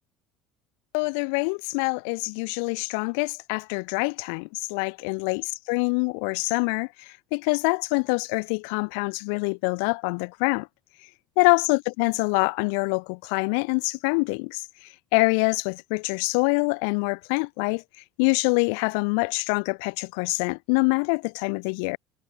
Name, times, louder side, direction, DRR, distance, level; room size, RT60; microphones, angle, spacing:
voice 1, 0.9-10.7 11.4-17.8 18.2-22.0, left 37 dB, 85° left, 1.4 m, -25 dB
cardioid pair, 155°, 0 cm